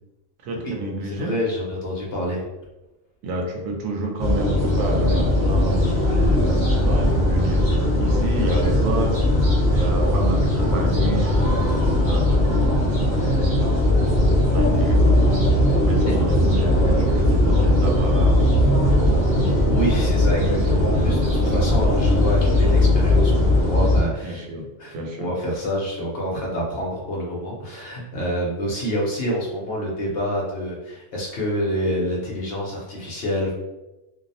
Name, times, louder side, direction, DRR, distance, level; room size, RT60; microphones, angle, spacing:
voice 1, 0.4-1.3 3.2-9.1 9.6-12.3 13.2-15.2 15.8-19.2 24.2-25.3, right 1 dB, 85° right, 1 dB, 1.0 m, -30 dB
voice 2, 1.0-2.4 16.1-16.2 19.7-24.4 24.8-33.5, equal, 60° left, -3 dB, 0.7 m, -27 dB
sound 1, 4.2-24.0, left 1 dB, 55° right, 1.1 m, -19 dB
2.6 x 2.0 x 2.6 m, 1.0 s
omnidirectional pair, 1.3 m